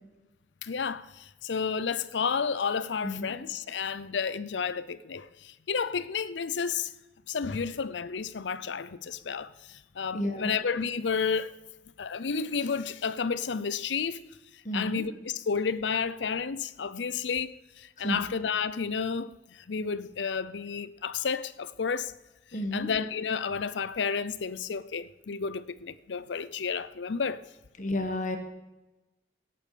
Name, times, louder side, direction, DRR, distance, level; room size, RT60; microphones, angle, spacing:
voice 1, 0.6-6.9 7.3-11.5 12.0-14.2 14.7-22.1 22.7-27.4, left 5 dB, 90° left, 0.6 m, -31 dB
voice 2, 3.0-3.4 10.1-10.5 14.6-15.1 18.0-18.3 22.5-22.9 27.8-28.4, left 1 dB, 45° left, 1.7 m, -31 dB
17.5 x 8.7 x 5.1 m
head